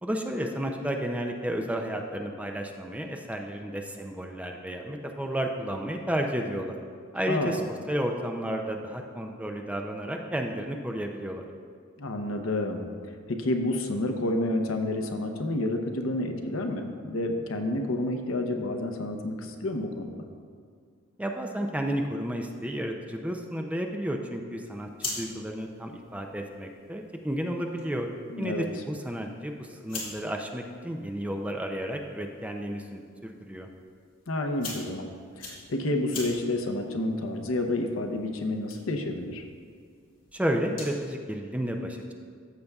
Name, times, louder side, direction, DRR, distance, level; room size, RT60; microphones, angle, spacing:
voice 1, 0.0-6.8 7.1-7.6 7.9-11.5 21.2-28.1 28.4-33.7 40.3-42.1, equal, 5° right, 3 dB, 0.4 m, -32 dB
voice 2, 12.0-12.9 13.3-20.1 28.3-28.7 34.3-35.1 35.4-39.4, left 1 dB, 70° left, 5 dB, 0.8 m, -29 dB
sound 1, 24.7-41.1, left 3 dB, 40° left, 2.2 m, -45 dB
14.0 x 6.5 x 2.4 m, 2.2 s
head